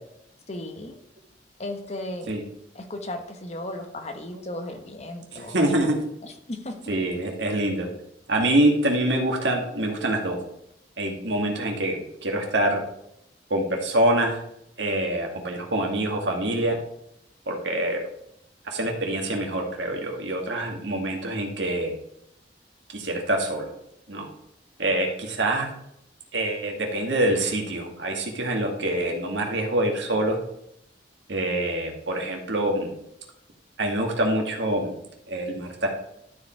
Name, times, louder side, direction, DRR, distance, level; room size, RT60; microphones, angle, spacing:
voice 1, 0.5-1.0 1.6-2.3 2.7-5.6 6.2-6.8, left 1 dB, 35° left, 6 dB, 1.1 m, -35 dB
voice 2, 5.3-5.9 6.9-7.9 8.3-10.4 11.0-12.8 13.5-14.4 14.8-16.8 17.5-18.0 18.6-21.9 22.9-23.7 24.1-24.3 24.8-25.7 26.3-30.4 31.3-32.9 33.8-34.9 35.3-35.9, right 1 dB, 80° right, 1 dB, 2.1 m, -25 dB
12.0 x 5.1 x 4.5 m, 0.77 s
head